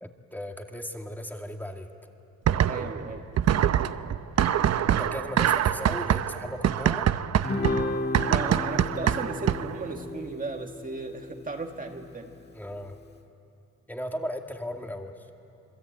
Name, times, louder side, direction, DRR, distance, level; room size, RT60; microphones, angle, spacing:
voice 1, 0.0-1.9 5.0-7.1 12.5-13.0 13.9-15.3, equal, 5° left, 3 dB, 2.4 m, -36 dB
sound 1, 2.5-3.1 3.4-9.8, right 10 dB, 60° right, 0.9 m, -24 dB
voice 2, 2.7-3.2 8.3-12.3, right 3 dB, 25° right, 3 dB, 1.8 m, -36 dB
Guitar, 7.4-12.0, left 2 dB, 35° left, 1.8 m, -33 dB
27.0 x 22.0 x 9.1 m, 2.7 s
cardioid pair, 90°, 30 cm